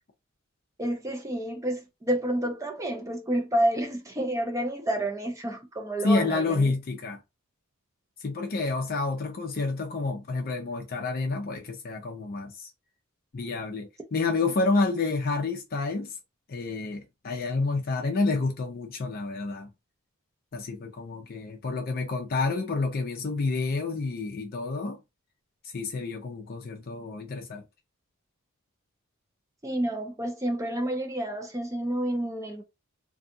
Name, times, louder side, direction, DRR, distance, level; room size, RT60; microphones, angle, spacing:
voice 1, 0.8-6.7 29.6-32.6, right 1 dB, 15° right, 0.5 m, -29 dB
voice 2, 6.0-7.2 8.2-12.7 13.3-16.1 16.5-19.7 20.5-25.0 25.7-27.6, left 3 dB, 45° left, 0.4 m, -29 dB
2.6 x 2.3 x 2.6 m
head